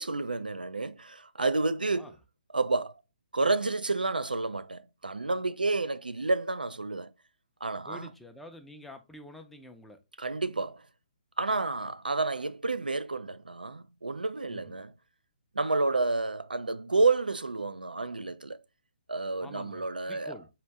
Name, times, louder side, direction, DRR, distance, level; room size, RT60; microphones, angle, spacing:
voice 1, 0.0-2.2 2.5-2.9 3.3-7.1 7.6-8.1 10.2-10.8 11.4-14.9 15.5-18.6 19.1-20.4, right 3 dB, 90° right, 0.3 m, -30 dB
voice 2, 7.9-10.0 14.5-14.8 19.4-20.5, left 1 dB, 5° left, 0.5 m, -48 dB
4.2 x 2.5 x 3.4 m
figure-of-eight pair, 135°, 5 cm